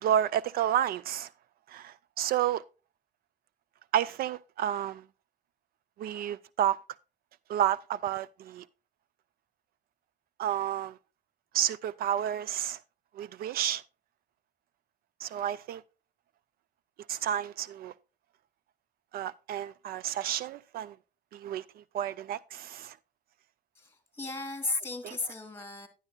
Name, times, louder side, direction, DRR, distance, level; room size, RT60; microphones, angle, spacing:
voice 1, 0.0-1.3 1.7-2.6 3.9-5.0 6.0-6.8 7.5-8.6 10.4-11.0 11.5-12.8 13.2-13.8 15.2-15.8 17.1-17.9 19.1-20.9 21.3-21.6 21.9-23.0 25.0-25.1, right 10 dB, 60° right, 0.4 m, -30 dB
voice 2, 23.8-25.9, left 3 dB, 15° left, 2.3 m, -35 dB
11.0 x 10.5 x 2.2 m
cardioid pair, 110°, 17 cm